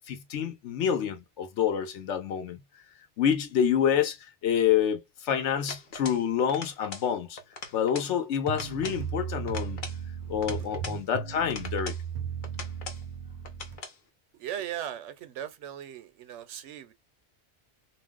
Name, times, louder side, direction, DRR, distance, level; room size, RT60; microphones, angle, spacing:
voice 1, 0.1-2.6 3.2-4.2 4.4-7.4 7.7-9.8 10.3-12.0, left 8 dB, 80° left, 1.0 m, -27 dB
sound 1, 5.7-6.2 6.5-7.1 7.4-8.1 8.5-9.0 9.5-11.0 11.5-12.0 12.4-13.0 13.4-14.0, left 4 dB, 50° left, 0.8 m, -41 dB
sound 2, 8.5-13.8, right 8 dB, 55° right, 0.5 m, -36 dB
voice 2, 14.3-16.9, right 10 dB, 80° right, 0.9 m, -38 dB
2.5 x 2.0 x 3.5 m
omnidirectional pair, 1.2 m